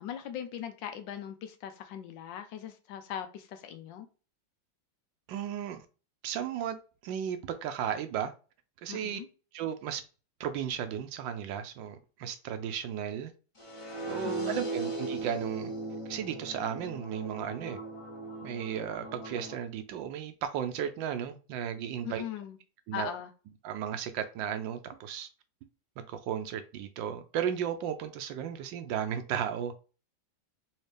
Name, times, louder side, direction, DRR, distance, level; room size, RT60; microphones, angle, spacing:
voice 1, 0.0-4.1 8.9-9.3 14.2-14.6 22.0-22.6 22.9-23.3, left 9 dB, 75° left, 1.3 m, -40 dB
voice 2, 5.3-5.8 6.2-6.8 7.0-8.3 8.8-9.2 9.5-10.0 10.4-13.3 14.1-15.7 16.1-17.8 18.4-22.2 22.9-23.1 23.6-25.3 26.0-29.8, right 9 dB, 75° right, 1.2 m, -35 dB
sound 1, 13.6-19.5, right 2 dB, 30° left, 0.6 m, -38 dB
4.3 x 2.7 x 3.2 m
omnidirectional pair, 2.1 m